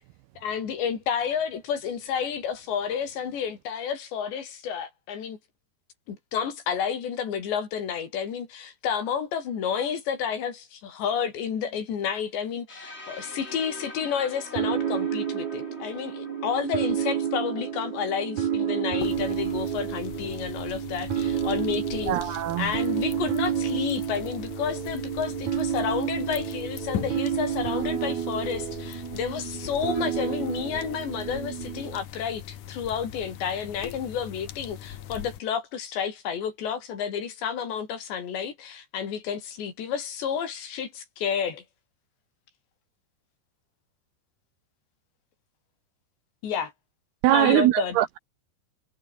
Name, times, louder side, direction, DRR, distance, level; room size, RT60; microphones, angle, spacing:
voice 1, 0.4-5.4 6.1-41.6 46.4-46.7 47.3-48.0, left 7 dB, 75° left, 6.0 m, -31 dB
sound 1, 12.7-20.5, left 2 dB, 15° left, 5.7 m, -45 dB
sound 2, 14.6-32.0, right 9 dB, 50° right, 2.6 m, -30 dB
sound 3, 19.0-35.4, left 11 dB, 60° left, 2.4 m, -40 dB
voice 2, 22.1-22.7 47.2-48.2, right 14 dB, 75° right, 2.6 m, -22 dB
omnidirectional pair, 5.1 m